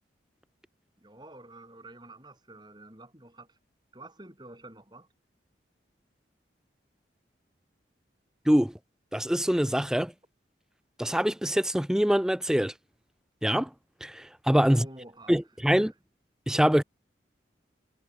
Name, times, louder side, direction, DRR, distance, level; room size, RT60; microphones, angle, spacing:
voice 1, 1.0-3.6 3.9-5.1 14.7-15.3 15.8-15.9, right 2 dB, 25° right, 7.6 m, -49 dB
voice 2, 9.1-10.1 11.0-12.7 13.4-13.7 14.0-14.9 15.3-15.9 16.5-16.8, equal, 5° right, 0.4 m, -24 dB
head